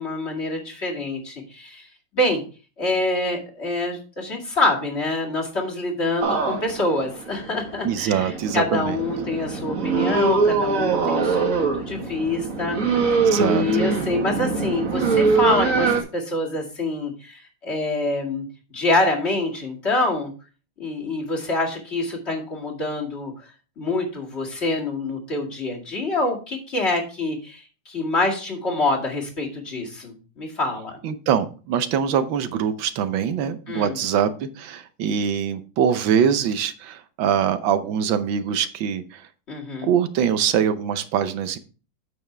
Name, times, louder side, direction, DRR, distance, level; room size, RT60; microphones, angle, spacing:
voice 1, 0.0-1.9 2.1-2.4 2.8-12.8 13.4-18.4 18.7-20.3 20.8-23.5 23.8-31.0 33.7-34.0 39.5-39.9, left 2 dB, 35° left, -1 dB, 2.4 m, -26 dB
sound 1, 6.2-16.0, right 4 dB, 45° right, 1.9 m, -23 dB
voice 2, 7.8-9.0 13.2-13.7 31.0-39.3 39.8-41.6, right 8 dB, 85° right, 11 dB, 1.6 m, -23 dB
8.9 x 7.0 x 3.3 m, 0.35 s
omnidirectional pair, 2.1 m